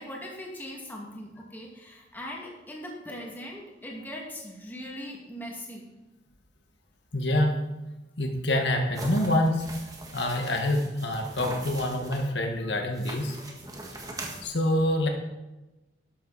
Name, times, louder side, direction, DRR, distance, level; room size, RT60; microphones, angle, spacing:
voice 1, 0.0-5.9, equal, 10° left, -2 dB, 2.3 m, -40 dB
voice 2, 7.1-7.5 8.2-9.6 10.1-13.4 14.4-15.1, left 1 dB, 70° left, 3 dB, 1.7 m, -26 dB
sound 1, 8.9-12.3 12.9-14.4, right 2 dB, 20° right, 1.5 m, -41 dB
12.5 x 11.0 x 4.2 m, 1.0 s
head